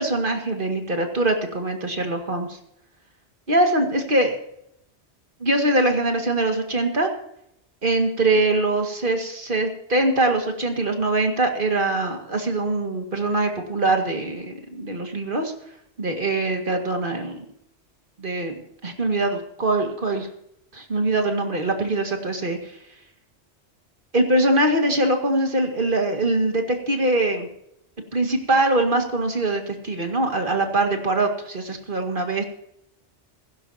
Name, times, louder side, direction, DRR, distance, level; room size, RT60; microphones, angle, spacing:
voice 1, 0.0-2.6 3.5-4.4 5.4-7.1 7.8-15.5 16.0-17.4 18.2-20.3 20.7-22.8 24.1-27.5 28.1-32.4, right 2 dB, 50° right, 4 dB, 2.1 m, -23 dB
16.5 x 15.5 x 2.8 m, 0.77 s
omnidirectional pair, 1.2 m